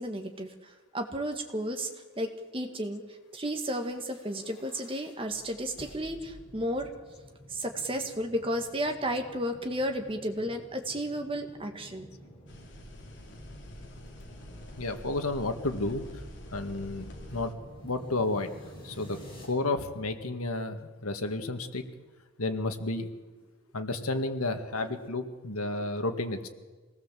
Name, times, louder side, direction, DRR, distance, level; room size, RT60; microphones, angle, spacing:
voice 1, 0.0-1.9 2.2-6.9 7.5-12.1, equal, 25° right, 4 dB, 2.0 m, -33 dB
sound 1, 3.7-19.5, equal, 20° left, 6.8 m, -51 dB
sound 2, 12.5-17.5, left 1 dB, 55° left, 3.0 m, -46 dB
voice 2, 14.8-16.0 16.5-17.5 17.8-18.5 18.8-19.2 19.4-21.8 22.4-23.1 23.7-26.5, left 2 dB, 90° left, 7 dB, 1.9 m, -31 dB
25.5 x 18.5 x 7.6 m, 1.3 s
head